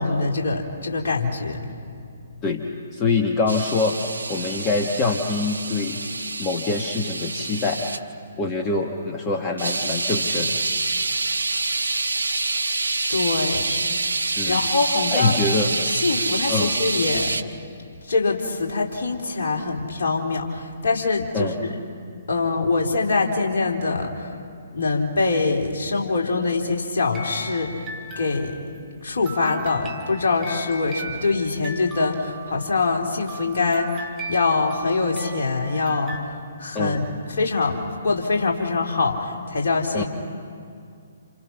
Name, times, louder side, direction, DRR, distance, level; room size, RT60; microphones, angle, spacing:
voice 1, 0.0-1.6 13.1-13.7 14.4-15.4 15.9-17.4 18.1-21.7 22.3-24.3 24.7-27.8 28.2-28.6 29.0-36.2 36.6-37.1 37.4-40.0, left 3 dB, 55° left, -1 dB, 3.8 m, -24 dB
voice 2, 2.9-6.0 6.4-7.9 8.4-10.6 13.6-13.8 14.4-14.6 15.1-15.7 16.5-16.8 21.3-21.5 36.7-37.0 39.9-40.0, left 3 dB, 20° left, 1 dB, 1.7 m, -24 dB
sound 1, 3.5-8.0 9.6-17.4, right 3 dB, 75° right, 1.0 m, -26 dB
sound 2, 27.1-28.7 29.3-36.2, right 3 dB, 15° right, 2.4 m, -38 dB
29.0 x 29.0 x 6.0 m, 2.3 s
figure-of-eight pair, 130°, 0 cm